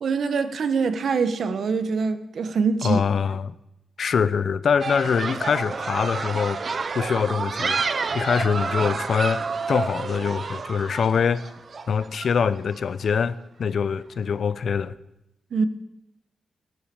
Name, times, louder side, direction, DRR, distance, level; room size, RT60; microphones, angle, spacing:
voice 1, 0.0-3.0 15.5-15.7, right 5 dB, 65° right, 1.4 m, -24 dB
voice 2, 2.8-3.5 4.0-6.6 6.9-7.8 8.1-11.5 11.9-14.9, left 6 dB, 65° left, 0.8 m, -24 dB
sound 1, 4.8-12.8, right 4 dB, 45° right, 1.0 m, -29 dB
17.0 x 12.0 x 7.1 m
cardioid pair, 95°, 0 cm